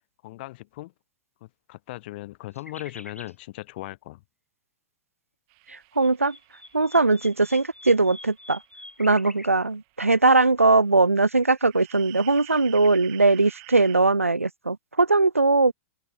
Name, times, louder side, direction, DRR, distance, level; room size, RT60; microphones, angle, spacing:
voice 1, 0.2-0.9 1.4-4.2, left 18 dB, 50° left, 5.3 m, -38 dB
sound 1, 2.5-3.3 5.7-9.5, left 1 dB, 90° left, 2.1 m, -45 dB
sound 2, 5.5-10.0 10.4-10.5 11.2-14.0, right 40 dB or more, 40° right, 7.0 m, -49 dB
voice 2, 5.7-6.4 6.7-8.6 9.0-15.7, right 3 dB, 85° right, 1.0 m, -20 dB
open air
figure-of-eight pair, 100°, 7 cm